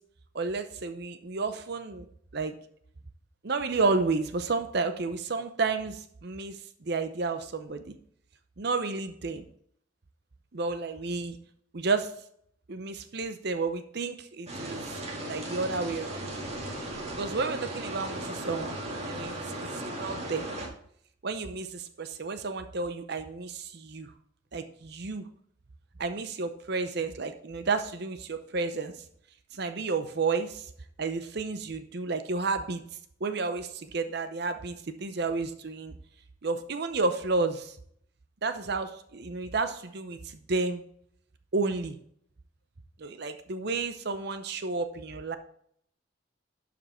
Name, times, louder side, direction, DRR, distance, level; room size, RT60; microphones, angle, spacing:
voice 1, 0.3-2.0 2.3-2.5 3.4-7.8 8.6-9.4 10.5-11.4 11.7-12.1 12.7-15.0 15.3-16.2 17.2-18.8 19.0-19.3 19.6-20.5 21.2-24.1 24.5-25.2 26.0-28.9 29.5-30.7 31.0-32.8 33.2-36.0 36.4-37.8 38.4-40.8 41.5-42.0 43.0-45.4, right 3 dB, 55° right, 8 dB, 0.7 m, -31 dB
sound 1, 14.5-20.7, right 1 dB, 35° right, 2.0 m, -36 dB
12.0 x 5.2 x 4.4 m, 0.65 s
head